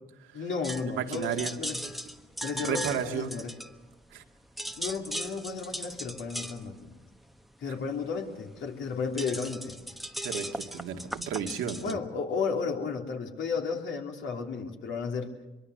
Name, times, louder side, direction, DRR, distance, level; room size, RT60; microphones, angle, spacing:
voice 1, 0.3-1.8 2.4-3.5 4.7-7.0 7.6-9.8 11.8-15.3, left 5 dB, 70° left, 2 dB, 3.1 m, -33 dB
sound 1, 0.6-4.2 4.5-11.9, right 1 dB, ahead, 1.0 m, -38 dB
voice 2, 0.9-1.5 2.6-3.4 4.1-4.2 10.2-12.0, right 7 dB, 85° right, 4 dB, 1.9 m, -33 dB
23.5 x 23.0 x 6.5 m, 1.1 s
cardioid pair, 90°, 20 cm